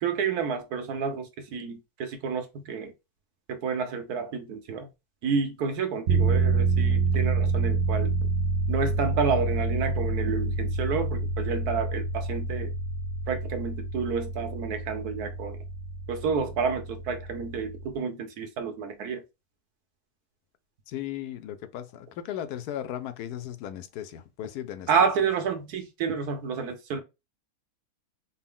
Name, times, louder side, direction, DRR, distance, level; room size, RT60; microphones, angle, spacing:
voice 1, 0.0-2.9 3.5-4.9 5.2-8.1 8.7-12.7 13.3-15.6 16.1-19.2 24.9-27.0, right 5 dB, 80° right, 1.3 m, -29 dB
sound 1, 6.1-17.9, right 3 dB, 65° right, 0.9 m, -28 dB
voice 2, 20.9-24.9, left 11 dB, 85° left, 1.1 m, -36 dB
4.1 x 2.1 x 3.6 m
omnidirectional pair, 1.6 m